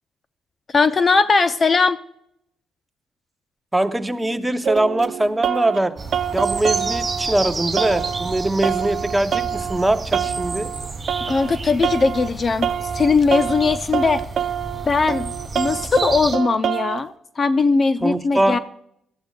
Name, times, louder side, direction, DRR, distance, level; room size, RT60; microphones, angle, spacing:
voice 1, 0.7-2.0 8.6-8.7 11.2-14.2 14.9-18.6, left 4 dB, 35° left, 12 dB, 0.5 m, -19 dB
voice 2, 3.7-6.0 6.3-10.7 18.0-18.6, right 1 dB, 10° right, 9 dB, 0.7 m, -22 dB
sound 1, 4.2-5.8 6.1-7.5 7.8-11.6 11.8-12.3 12.6-17.0, right 9 dB, 60° right, 0.5 m, -26 dB
sound 2, 6.0-16.4, right 3 dB, 30° right, 2.9 m, -31 dB
18.0 x 12.5 x 2.3 m, 0.74 s
cardioid pair, 90°, 0 cm